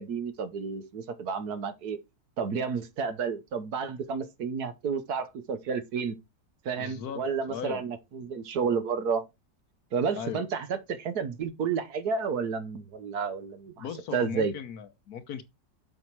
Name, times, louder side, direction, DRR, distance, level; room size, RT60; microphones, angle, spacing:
voice 1, 0.0-2.0 2.4-6.2 6.6-9.2 9.9-13.8 14.1-14.5, right 5 dB, 65° right, 1.5 m, -31 dB
voice 2, 6.8-7.8 10.2-10.5 13.8-15.4, left 8 dB, 65° left, 1.3 m, -38 dB
7.6 x 5.8 x 4.7 m
omnidirectional pair, 1.9 m